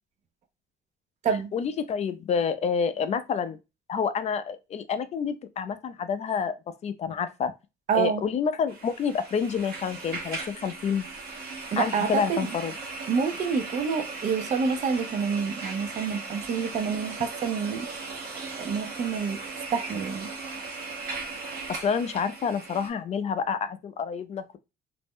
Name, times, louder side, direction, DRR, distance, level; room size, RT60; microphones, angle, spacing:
voice 1, 1.5-3.6 3.9-6.5 6.8-7.5 7.9-11.0 11.8-12.7 21.8-24.6, left 6 dB, 40° left, 0.4 m, -28 dB
voice 2, 7.9-8.2 11.7-12.5 13.1-17.9 18.6-19.4 19.7-20.3, right 6 dB, 45° right, 0.5 m, -27 dB
sound 1, 8.7-22.9, right 3 dB, 65° right, 1.0 m, -38 dB
2.5 x 2.0 x 3.5 m
cardioid pair, 110°, 17 cm